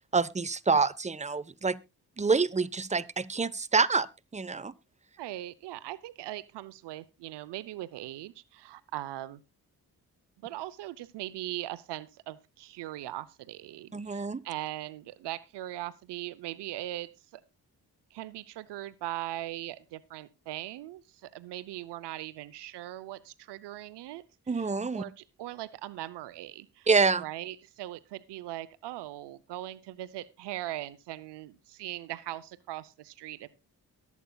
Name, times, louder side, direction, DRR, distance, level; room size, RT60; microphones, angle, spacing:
voice 1, 0.1-1.8 2.2-4.1 4.3-4.7 13.9-14.4 24.5-25.0 26.9-27.2, right 4 dB, 15° right, 0.8 m, -27 dB
voice 2, 5.2-9.4 10.4-17.4 18.1-26.9 27.2-33.5, right 14 dB, 85° right, 0.7 m, -40 dB
22.5 x 8.3 x 2.3 m
supercardioid pair, 40°, 40 cm